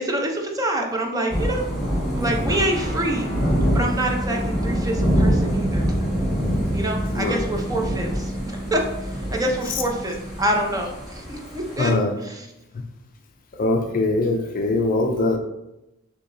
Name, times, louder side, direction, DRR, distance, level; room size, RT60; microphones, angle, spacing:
voice 1, 0.0-1.7 2.1-3.3 3.7-5.9 6.7-12.5, right 1 dB, 15° right, 2 dB, 0.6 m, -26 dB
Thunder / Rain, 1.3-11.9, equal, ahead, 1.6 m, -25 dB
sound 1, 2.5-10.7, equal, 60° right, 1.5 m, -33 dB
voice 2, 11.8-12.1 12.7-12.8 13.6-15.4, left 2 dB, 40° left, 4 dB, 0.4 m, -22 dB
6.8 x 2.9 x 2.6 m, 0.92 s
head